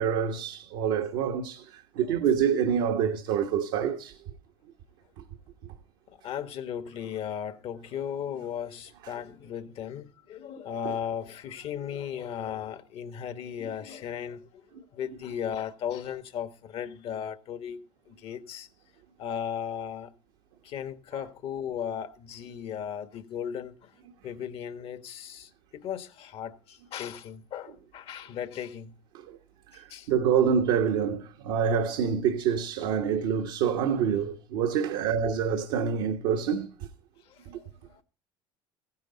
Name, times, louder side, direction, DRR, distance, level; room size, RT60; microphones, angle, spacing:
voice 1, 0.0-4.2 5.2-5.3 5.6-5.7 10.8-10.9 29.1-29.4 29.7-36.9 37.5-37.6, right 7 dB, 75° right, 1.3 m, -27 dB
voice 2, 6.1-17.8 18.1-18.7 19.2-20.1 20.6-24.0 24.2-28.9 29.7-30.1 37.2-38.0, left 8 dB, 55° left, 1.4 m, -36 dB
15.5 x 10.5 x 4.0 m
hypercardioid pair, 75°, 12 cm